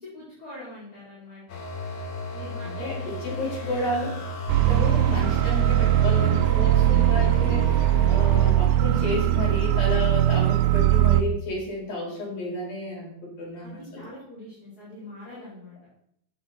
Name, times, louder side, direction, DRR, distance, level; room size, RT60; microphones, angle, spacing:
voice 1, 0.0-1.6 2.3-3.9 13.6-15.8, left 1 dB, 20° left, -8 dB, 4.5 m, -43 dB
sound 1, 1.5-8.5, left 2 dB, 70° left, 4.9 m, -33 dB
voice 2, 2.6-4.1 4.6-14.1, left 2 dB, 50° left, -2 dB, 6.3 m, -32 dB
sound 2, 4.5-11.2, right 13 dB, 85° right, 3.0 m, -20 dB
16.0 x 9.3 x 4.5 m, 0.70 s
omnidirectional pair, 5.3 m